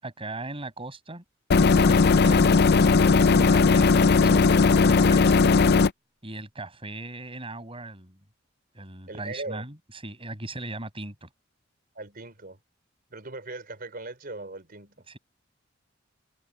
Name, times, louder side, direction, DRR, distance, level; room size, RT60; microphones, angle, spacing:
voice 1, 0.0-1.2 1.6-3.9 4.2-5.3 6.2-8.2 8.7-11.3 15.1-15.2, right 2 dB, 30° right, 6.8 m, -38 dB
sound 1, 1.5-5.9, left 4 dB, 55° left, 0.5 m, -18 dB
voice 2, 9.1-9.7 11.9-12.6 13.1-15.0, right 2 dB, 50° right, 4.5 m, -39 dB
head